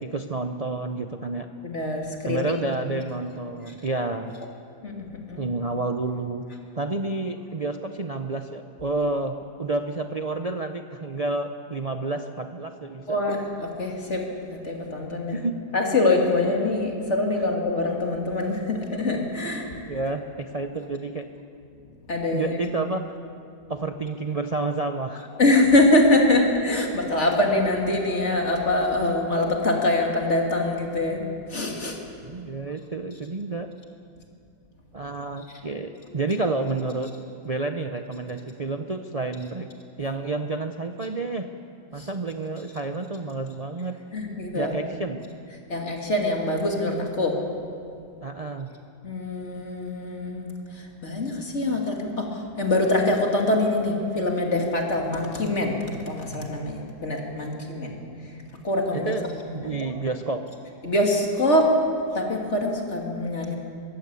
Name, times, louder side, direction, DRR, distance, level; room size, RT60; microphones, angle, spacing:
voice 1, 0.0-1.5 2.2-4.3 5.4-6.4 6.7-13.2 15.3-15.6 19.8-21.3 22.3-23.2 23.7-25.3 32.2-33.7 34.9-37.1 37.4-39.7 40.0-41.5 41.9-44.0 44.5-45.2 48.2-48.7 58.9-59.3 59.5-60.4, right 3 dB, 55° right, 6 dB, 0.4 m, -29 dB
voice 2, 1.6-2.6 4.8-5.4 13.1-14.2 14.5-15.4 15.7-19.7 22.1-22.6 25.4-31.2 31.5-32.0 42.0-42.1 44.1-44.8 45.7-47.4 49.0-55.8 56.1-58.0 58.6-59.1 59.6-59.9 60.8-61.7 62.1-63.6, left 2 dB, 40° left, 0 dB, 2.8 m, -24 dB
23.0 x 14.5 x 8.3 m, 2.4 s
omnidirectional pair, 1.8 m